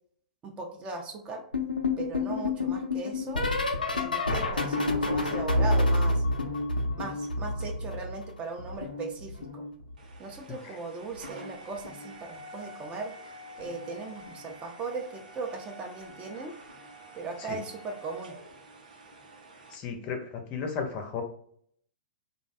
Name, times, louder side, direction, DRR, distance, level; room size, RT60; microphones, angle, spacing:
voice 1, 0.4-1.5 2.0-3.4 3.9-6.2 7.0-9.7 10.2-13.1 13.6-16.5 17.1-18.4, right 3 dB, 25° right, 2 dB, 0.4 m, -38 dB
sound 1, 1.5-8.3 8.6-10.2 11.2-11.5 11.8-12.1 13.7-13.9 14.3-14.5 16.1-16.2, left 2 dB, 90° left, 0.5 m, -29 dB
sound 2, 10.0-19.8, right 1 dB, 70° right, 0.7 m, -48 dB
voice 2, 19.7-21.2, left 5 dB, 30° left, 4 dB, 0.5 m, -34 dB
2.5 x 2.1 x 2.5 m, 0.64 s
figure-of-eight pair, 115°, 5 cm